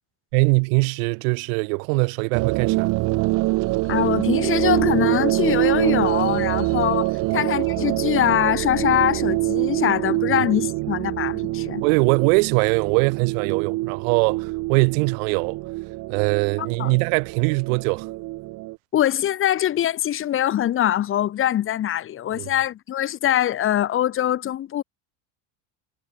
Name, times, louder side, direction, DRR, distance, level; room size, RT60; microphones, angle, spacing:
voice 1, 0.3-2.9 7.2-7.4 10.3-10.4 11.8-15.6 16.1-18.1 22.3-22.5, right 33 dB, 65° right, 5.4 m, -22 dB
sound 1, 2.3-18.8, right 21 dB, 45° right, 3.0 m, -25 dB
voice 2, 3.9-11.8 16.6-16.9 18.9-24.8, left 11 dB, 30° left, 4.9 m, -23 dB
cardioid pair, 180°, 43 cm